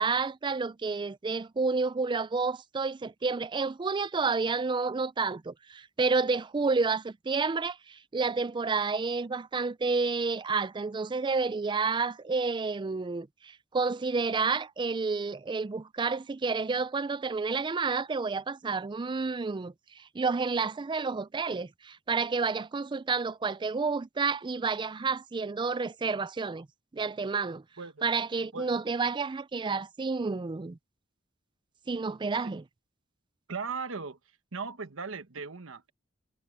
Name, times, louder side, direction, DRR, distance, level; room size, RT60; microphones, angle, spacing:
voice 1, 0.0-26.7 26.9-27.6 28.0-30.8 31.9-32.6, right 4 dB, 25° right, 0.4 m, -30 dB
voice 2, 33.5-34.2 34.5-35.9, right 5 dB, 85° right, 1.2 m, -38 dB
head